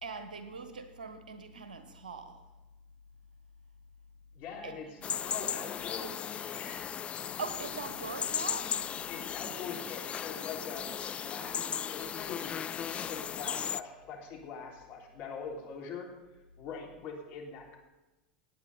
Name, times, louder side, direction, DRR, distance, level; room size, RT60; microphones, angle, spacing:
voice 1, 0.0-2.5 4.6-4.8 7.4-8.8, right 4 dB, 75° right, 9 dB, 1.4 m, -41 dB
voice 2, 4.3-6.8 9.1-12.6 12.9-16.1 16.6-17.8, left 5 dB, 45° left, -1 dB, 3.6 m, -43 dB
sound 1, 5.0-13.8, left 8 dB, 25° left, 0.3 m, -36 dB
18.0 x 8.7 x 4.2 m, 1.1 s
figure-of-eight pair, 85°, 5 cm